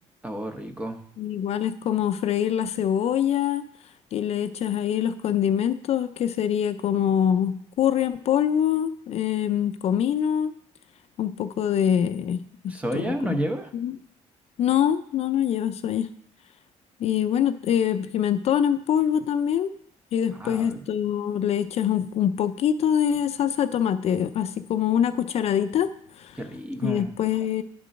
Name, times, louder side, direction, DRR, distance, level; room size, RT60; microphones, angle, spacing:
voice 1, 0.2-1.0 12.7-13.7 20.4-20.8 26.4-27.1, right 1 dB, 10° right, 6 dB, 0.7 m, -30 dB
voice 2, 1.2-3.6 4.1-10.5 11.2-13.4 13.7-14.0 14.6-16.1 17.0-19.7 20.1-25.9 26.2-26.4 26.8-27.6, left 9 dB, 55° left, 10 dB, 0.4 m, -24 dB
11.0 x 3.8 x 5.2 m, 0.64 s
cardioid pair, 150°, 13 cm